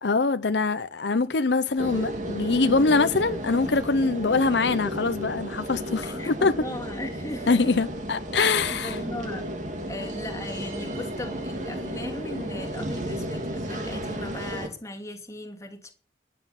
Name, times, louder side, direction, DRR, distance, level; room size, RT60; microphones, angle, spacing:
voice 1, 0.0-6.5 7.5-9.0, left 4 dB, 75° left, 0.7 m, -23 dB
sound 1, 1.8-14.7, equal, 45° right, 2.4 m, -33 dB
voice 2, 6.0-7.7 8.5-9.5 9.9-15.9, left 1 dB, 15° left, 2.4 m, -37 dB
13.0 x 9.6 x 7.5 m
head